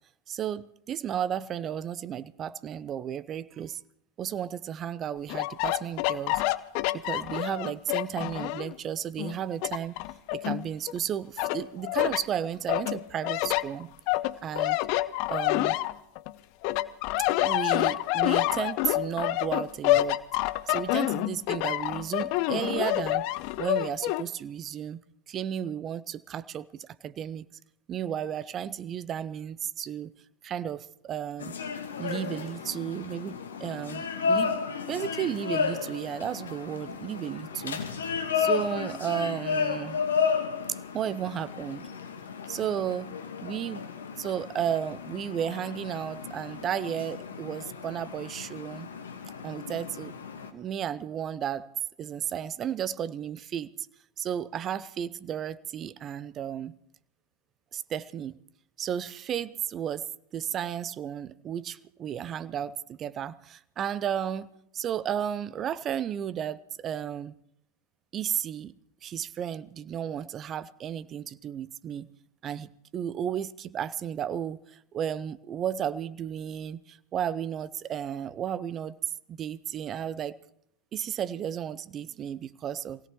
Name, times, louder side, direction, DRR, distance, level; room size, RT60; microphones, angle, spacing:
voice 1, 0.3-3.8 4.2-6.4 6.9-10.0 10.3-13.9 14.4-14.8 15.3-15.8 17.4-20.2 20.7-23.2 23.6-25.0 25.3-27.5 27.9-30.1 30.4-31.5 32.0-37.8 38.3-40.0 40.7-41.9 42.5-43.2 43.4-43.9 44.2-48.9 49.4-50.2 50.5-51.7 52.0-53.7 54.2-56.8 57.7-58.4 58.8-60.1 60.3-67.3 68.1-68.7 69.0-72.1 72.4-78.9 79.3-80.4 80.9-83.0, right 9 dB, 35° right, 0.6 m, -33 dB
sound 1, 5.3-8.7 9.2-11.0 11.4-12.2 12.7-16.3 16.6-24.2, left 17 dB, 55° left, 0.6 m, -28 dB
sound 2, 31.4-50.5, left 6 dB, 75° left, 1.4 m, -33 dB
26.5 x 17.0 x 3.0 m
figure-of-eight pair, 85°, 0 cm